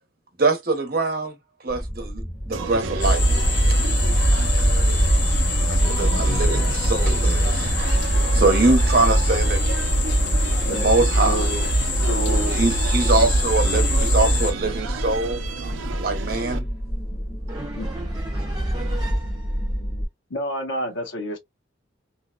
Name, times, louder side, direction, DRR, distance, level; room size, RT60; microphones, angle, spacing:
voice 1, 0.4-1.3 1.6-3.2 5.7-7.7 8.0-9.6 10.7-11.5 12.5-15.4 16.0-16.7, right 3 dB, 50° right, 0.8 m, -23 dB
sound 1, 1.7-20.1, equal, 35° left, 1.1 m, -28 dB
sound 2, 2.5-16.6, right 5 dB, 80° right, 0.5 m, -33 dB
sound 3, 3.0-14.5, equal, 60° left, 1.2 m, -21 dB
voice 2, 6.0-6.4 10.5-10.9 11.2-11.7 12.1-12.7 17.8-17.9 20.3-21.4, equal, 80° left, 0.9 m, -31 dB
voice 3, 17.5-19.8, right 2 dB, 20° right, 0.4 m, -36 dB
2.7 x 2.1 x 2.2 m
head